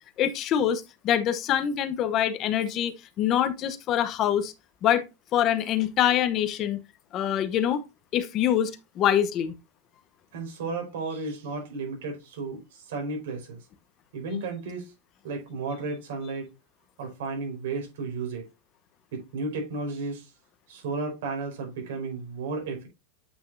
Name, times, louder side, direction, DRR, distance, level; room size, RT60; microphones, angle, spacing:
voice 1, 0.2-4.5 4.8-5.0 5.3-6.8 7.1-7.8 8.1-9.5, left 10 dB, 35° left, 0.9 m, -25 dB
voice 2, 10.3-13.6 14.1-14.9 15.2-16.5 17.0-18.4 19.1-20.3 20.7-22.9, right 3 dB, 75° right, 4.4 m, -33 dB
8.3 x 6.0 x 2.6 m
supercardioid pair, 155°, 0 cm